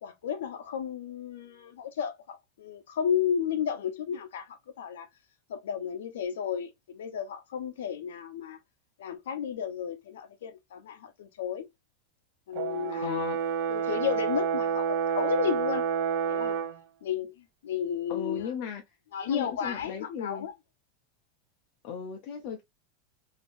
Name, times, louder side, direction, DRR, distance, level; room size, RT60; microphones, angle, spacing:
voice 1, 0.0-5.1 5.5-8.6 9.0-11.7 12.5-13.2 13.7-15.9 16.2-16.6 17.0-18.5 19.1-20.5, left 8 dB, 90° left, 0.8 m, -33 dB
Brass instrument, 12.6-16.8, right 7 dB, 65° right, 0.9 m, -29 dB
voice 2, 13.0-13.4 18.1-18.8 19.3-20.5 21.8-22.6, left 6 dB, 55° left, 0.8 m, -36 dB
3.5 x 2.8 x 2.5 m
supercardioid pair, 130°, 0 cm